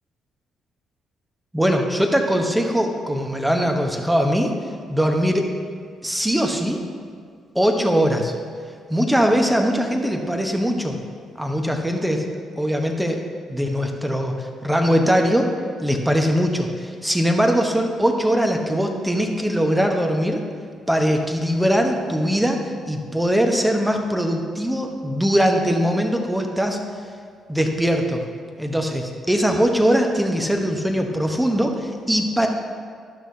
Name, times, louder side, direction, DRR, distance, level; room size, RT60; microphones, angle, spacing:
voice 1, 1.5-4.5 4.9-5.5 6.0-6.8 7.5-8.3 8.9-11.0 11.4-12.2 12.6-13.2 13.5-14.3 14.6-15.5 15.8-20.4 20.9-22.6 22.9-26.8 27.5-28.2 28.6-32.5, equal, 5° right, 3 dB, 1.1 m, -21 dB
12.0 x 6.1 x 2.8 m, 2.1 s
hypercardioid pair, 45°, 0 cm